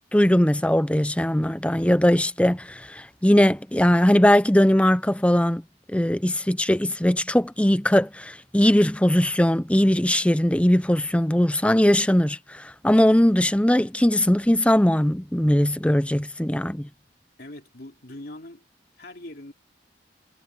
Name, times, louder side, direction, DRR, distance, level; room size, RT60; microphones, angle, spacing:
voice 1, 0.1-5.6 5.9-16.9, left 1 dB, 5° left, 0.6 m, -20 dB
voice 2, 17.4-18.6 19.0-19.5, left 1 dB, 60° left, 3.4 m, -41 dB
head